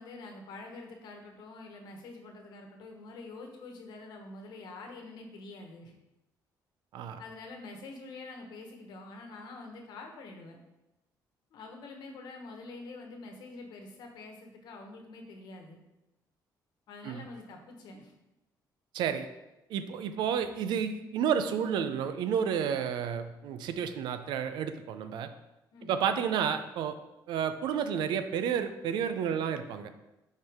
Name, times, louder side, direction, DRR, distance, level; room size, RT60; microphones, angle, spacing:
voice 1, 0.0-5.9 7.2-10.6 11.5-15.8 16.9-18.1 25.7-26.1, left 3 dB, 70° left, 3 dB, 1.2 m, -46 dB
voice 2, 18.9-19.3 19.7-25.3 25.9-27.0 27.3-29.9, right 8 dB, 85° right, 10 dB, 0.5 m, -31 dB
7.7 x 4.6 x 3.5 m, 0.97 s
cardioid pair, 150°, 7 cm